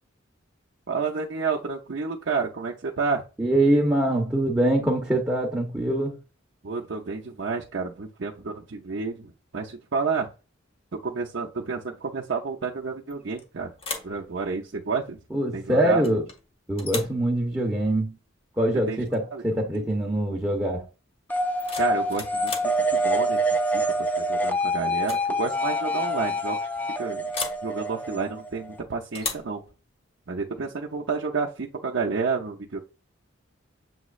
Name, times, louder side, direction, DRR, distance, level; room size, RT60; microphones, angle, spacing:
voice 1, 0.9-3.2 6.6-9.3 9.5-10.3 10.9-13.7 14.0-15.2 15.5-16.0 18.9-19.0 19.3-19.4 19.7-19.8 21.8-23.4 23.7-23.8 24.1-26.6 27.0-27.3 27.6-29.6 30.3-32.8, right 4 dB, 60° right, 0.6 m, -30 dB
voice 2, 3.4-6.2 15.3-16.2 16.7-18.1 18.6-20.8, right 1 dB, 10° right, 0.8 m, -24 dB
sound 1, 13.1-13.4 13.8-14.2 16.0-16.4 16.8-17.2 19.1-19.2 19.6-19.9 21.4-22.8 24.2-24.5 24.9-25.3 25.5-25.6 27.3-27.7 29.1-29.5, left 3 dB, 25° left, 0.9 m, -35 dB
sound 2, 21.3-28.8, equal, 10° left, 0.4 m, -26 dB
7.1 x 3.0 x 2.4 m
head